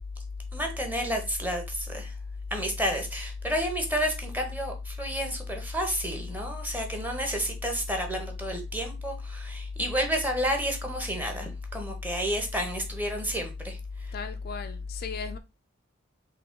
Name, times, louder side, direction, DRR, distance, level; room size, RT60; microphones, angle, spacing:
voice 1, 0.5-2.1 2.5-14.1, equal, 10° right, 0.8 m, -31 dB
voice 2, 14.1-15.4, left 5 dB, 50° left, 0.3 m, -34 dB
3.8 x 3.0 x 3.6 m
head